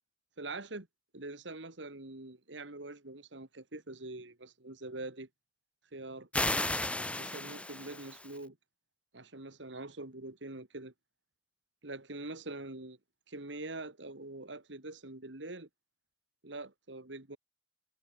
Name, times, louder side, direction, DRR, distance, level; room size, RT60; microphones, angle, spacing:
voice 1, 0.4-0.9 1.1-5.3 5.9-6.3 7.2-8.6 9.1-10.9 11.8-13.0 13.3-15.7 16.4-17.4, right 2 dB, 80° right, 2.5 m, -44 dB
sound 1, 6.3-8.4, left 2 dB, 5° left, 2.0 m, -34 dB
head